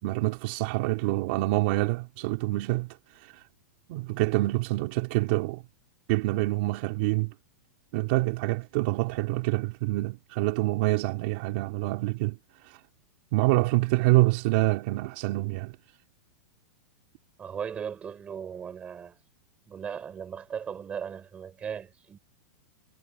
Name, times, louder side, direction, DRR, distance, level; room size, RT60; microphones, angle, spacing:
voice 1, 0.0-3.4 3.9-5.6 6.1-7.3 7.9-12.4 12.6-12.8 13.3-15.8, right 20 dB, 40° right, 3.0 m, -26 dB
voice 2, 17.4-19.2 19.7-22.2, right 7 dB, 15° right, 6.2 m, -37 dB
supercardioid pair, 170°, 9 cm